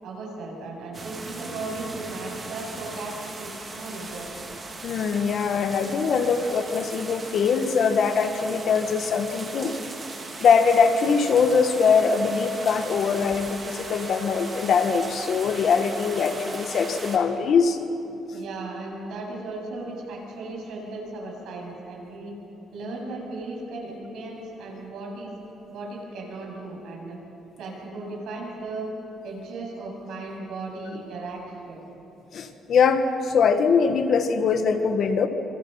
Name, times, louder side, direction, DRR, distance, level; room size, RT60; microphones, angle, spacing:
voice 1, 0.0-4.4 18.3-22.3 22.7-25.3 25.7-27.2 27.6-28.9 29.2-31.8, right 2 dB, 70° right, -1 dB, 7.7 m, -36 dB
sound 1, 0.9-17.2, right 3 dB, 25° right, 2.9 m, -38 dB
voice 2, 4.8-9.8 10.4-17.8 32.3-35.3, left 5 dB, 50° left, 7 dB, 1.5 m, -22 dB
27.0 x 25.0 x 5.7 m, 2.9 s
cardioid pair, 155°, 0 cm